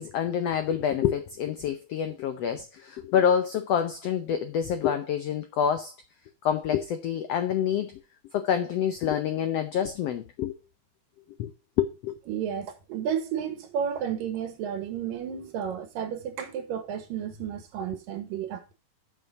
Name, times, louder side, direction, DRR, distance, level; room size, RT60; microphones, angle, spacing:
voice 1, 0.0-5.9 6.4-7.9 8.3-10.5 11.4-11.5 11.8-12.2, left 8 dB, 85° left, 1.4 m, -27 dB
voice 2, 12.3-18.7, right 8 dB, 85° right, 3.2 m, -32 dB
6.9 x 6.1 x 6.7 m
omnidirectional pair, 3.9 m